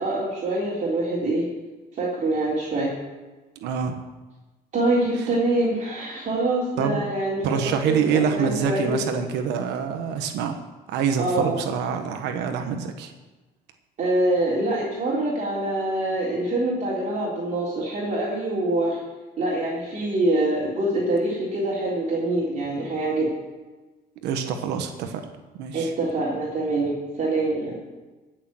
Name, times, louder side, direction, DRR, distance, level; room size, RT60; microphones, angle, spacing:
voice 1, 0.0-1.4 2.0-2.9 4.7-9.0 11.2-11.6 14.0-19.0 19.4-23.3 25.7-27.8, right 2 dB, 45° right, -6 dB, 3.8 m, -25 dB
voice 2, 3.6-4.0 6.8-7.0 7.4-10.6 10.9-13.1 24.2-25.2 25.6-25.9, right 7 dB, 90° right, 6 dB, 1.3 m, -26 dB
15.0 x 6.8 x 7.7 m, 1.2 s
cardioid pair, 110°, 17 cm